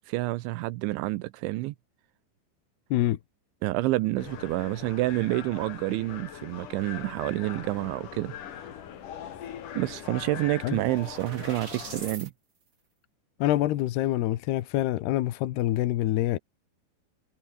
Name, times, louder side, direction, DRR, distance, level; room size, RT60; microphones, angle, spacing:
voice 1, 0.1-1.8 3.6-8.7 9.7-12.3, right 19 dB, 85° right, 3.1 m, -29 dB
sound 1, 4.2-12.2, left 9 dB, 50° left, 2.9 m, -41 dB
sound 2, 9.8-12.3, right 4 dB, 25° right, 1.8 m, -44 dB
voice 2, 13.4-16.4, left 14 dB, 70° left, 2.9 m, -26 dB
omnidirectional pair, 5.5 m